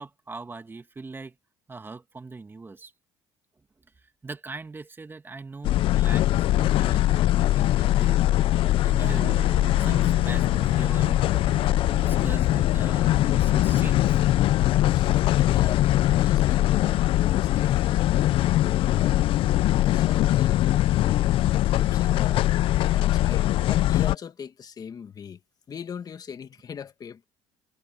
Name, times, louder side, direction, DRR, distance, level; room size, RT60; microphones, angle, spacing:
voice 1, 0.0-1.4 1.7-2.9 4.0-8.2 8.8-9.3 9.7-11.4 12.0-14.2, right 3 dB, 20° right, 1.9 m, -41 dB
sound 1, 5.6-24.2, left 14 dB, 60° left, 0.5 m, -22 dB
sound 2, 9.0-14.5, right 16 dB, 70° right, 1.4 m, -43 dB
voice 2, 14.9-19.2 19.6-22.5 22.7-25.4 25.7-27.2, left 7 dB, 40° left, 1.9 m, -41 dB
supercardioid pair, 85°, 10 cm